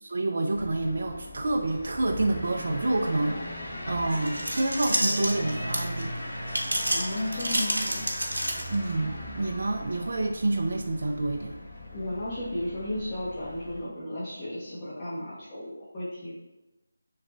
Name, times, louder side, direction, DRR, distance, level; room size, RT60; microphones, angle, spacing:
voice 1, 0.0-3.6 3.9-6.1 8.7-11.6, right 2 dB, 55° right, 2 dB, 0.3 m, -28 dB
sound 1, 0.5-13.8, left 1 dB, 40° left, 1.3 m, -38 dB
sound 2, 4.1-6.0 6.5-8.9, right 1 dB, 80° right, 0.8 m, -29 dB
voice 2, 6.9-8.1 11.9-16.3, left 1 dB, 25° left, -10 dB, 0.8 m, -34 dB
3.1 x 2.4 x 3.4 m, 1.0 s
figure-of-eight pair, 160°, 0 cm